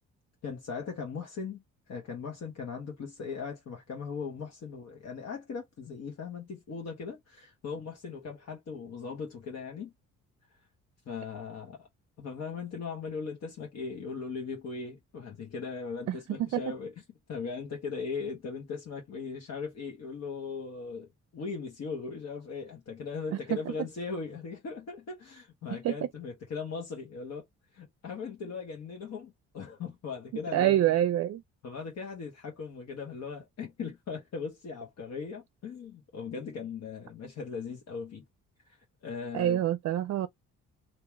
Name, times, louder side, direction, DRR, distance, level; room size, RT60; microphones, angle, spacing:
voice 1, 0.4-9.9 11.1-11.9 12.2-16.9 17.3-27.4 27.7-30.9 31.6-38.2 39.0-39.6, left 5 dB, 60° left, 1.5 m, -39 dB
voice 2, 16.1-16.6 25.8-25.9 30.5-31.4 39.3-40.3, right 12 dB, 55° right, 0.5 m, -26 dB
2.9 x 2.9 x 3.5 m
cardioid pair, 90°, 30 cm